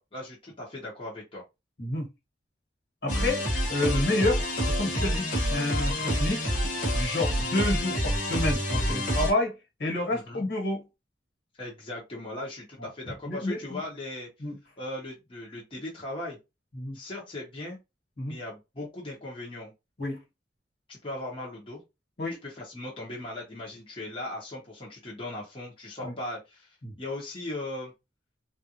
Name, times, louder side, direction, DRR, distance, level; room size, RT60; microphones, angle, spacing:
voice 1, 0.0-1.4 10.1-10.4 11.6-14.3 14.8-16.4 16.9-17.8 18.3-19.7 20.9-21.8 22.4-26.7 27.0-27.9, left 1 dB, 30° left, 1.0 m, -38 dB
voice 2, 1.8-2.1 3.0-6.5 6.9-10.8 13.2-13.8 14.4-14.6 16.7-17.0 18.2-18.4 20.0-20.2 22.2-22.4 26.0-26.1 26.8-26.9, left 2 dB, 65° left, 1.5 m, -29 dB
sound 1, 3.1-9.3, equal, 45° left, 1.2 m, -27 dB
3.5 x 2.4 x 2.9 m
head